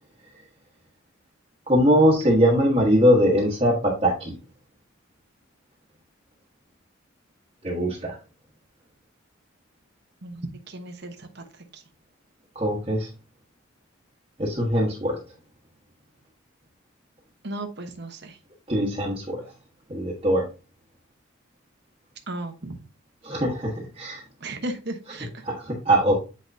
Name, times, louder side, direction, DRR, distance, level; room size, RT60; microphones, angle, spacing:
voice 1, 1.7-4.4 7.6-8.2 12.5-13.1 14.4-15.2 18.7-19.5 19.9-20.5 23.2-24.2 25.4-26.1, equal, 30° right, -5 dB, 1.4 m, -21 dB
voice 2, 10.2-11.4 11.7-11.8 17.4-18.4 22.3-22.8 24.4-25.4, right 1 dB, 55° right, 5 dB, 1.1 m, -35 dB
8.4 x 4.8 x 2.7 m, 0.32 s
head